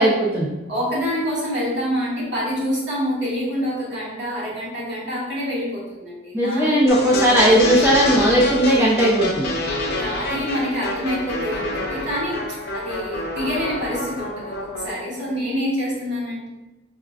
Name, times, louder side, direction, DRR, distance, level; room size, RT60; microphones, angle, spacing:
voice 1, 0.0-0.5 6.3-9.5, equal, 10° right, -5 dB, 0.4 m, -17 dB
voice 2, 0.7-7.0 9.8-16.5, equal, 70° right, -6 dB, 1.2 m, -27 dB
sound 1, 6.9-14.9, left 1 dB, 55° left, 0.4 m, -27 dB
4.5 x 2.4 x 2.3 m, 1.0 s
head